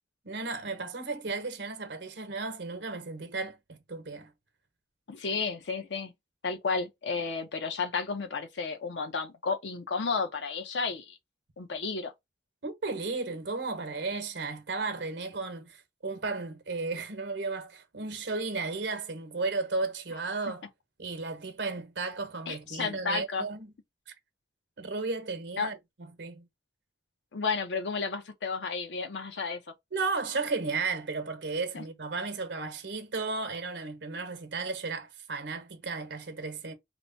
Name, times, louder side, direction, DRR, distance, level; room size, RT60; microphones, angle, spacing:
voice 1, 0.2-4.3 12.6-20.6 21.0-23.7 24.8-26.5 29.9-36.7, right 3 dB, 80° right, 0.8 m, -34 dB
voice 2, 5.1-6.1 6.4-11.2 11.6-12.1 22.5-23.4 25.6-25.7 27.3-29.6 31.7-31.8, left 4 dB, 85° left, 0.7 m, -32 dB
3.0 x 2.1 x 3.8 m
head